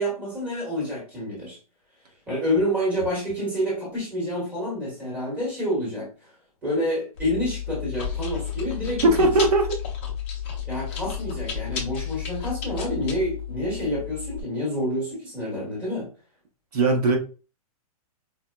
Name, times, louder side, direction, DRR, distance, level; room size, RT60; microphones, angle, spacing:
voice 1, 0.0-1.6 2.3-6.1 6.6-9.3 10.6-16.1, equal, 5° right, 1.1 m, -28 dB
Chewing mastication, 7.2-14.4, left 8 dB, 20° left, 0.5 m, -32 dB
voice 2, 9.0-9.8 16.7-17.2, right 2 dB, 80° right, 1.0 m, -19 dB
4.3 x 2.1 x 2.2 m
hypercardioid pair, 175°, 20 cm